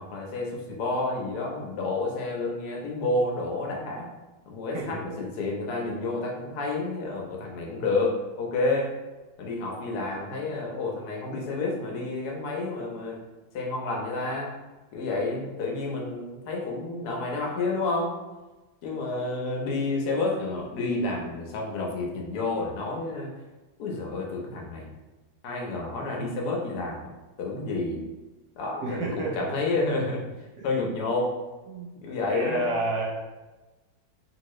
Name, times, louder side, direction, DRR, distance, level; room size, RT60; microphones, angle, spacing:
voice 1, 0.0-4.1 4.5-8.9 9.4-13.2 13.5-14.5 14.9-18.1 18.8-23.3 23.8-24.9 25.4-27.1 27.4-28.1 28.6-30.3 30.6-31.3 31.9-32.7, left 3 dB, 65° left, -1 dB, 1.0 m, -30 dB
voice 2, 4.7-5.1 19.1-19.2 28.8-29.5 30.6-31.0 31.7-31.9 32.3-33.0, right 2 dB, 70° right, -3 dB, 1.0 m, -31 dB
3.0 x 2.8 x 3.0 m, 1.2 s
omnidirectional pair, 2.2 m